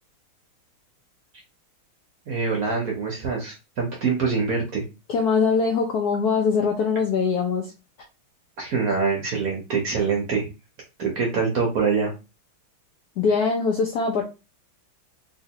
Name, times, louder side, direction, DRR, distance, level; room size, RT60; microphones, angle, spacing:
voice 1, 2.3-4.8 8.6-10.4 11.0-12.1, right 5 dB, 60° right, 0 dB, 1.0 m, -24 dB
voice 2, 5.1-7.7 13.2-14.2, left 5 dB, 75° left, 1 dB, 0.9 m, -22 dB
3.2 x 2.9 x 2.8 m, 0.28 s
omnidirectional pair, 2.3 m